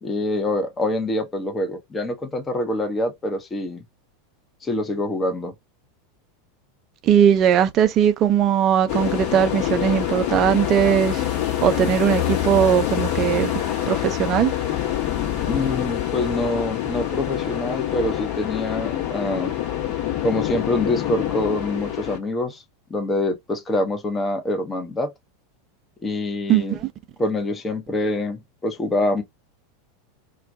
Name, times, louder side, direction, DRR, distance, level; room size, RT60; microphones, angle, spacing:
voice 1, 0.0-3.8 4.6-5.5 15.5-19.5 20.2-22.6 22.9-25.1 26.0-26.8 27.2-29.2, left 2 dB, 15° left, 0.6 m, -25 dB
voice 2, 7.0-11.2 11.6-13.5 13.9-14.5 26.5-26.8, right 9 dB, 35° right, 0.4 m, -19 dB
sound 1, 8.9-22.2, left 11 dB, 45° left, 0.9 m, -26 dB
2.3 x 2.1 x 2.5 m
figure-of-eight pair, 85°, 0 cm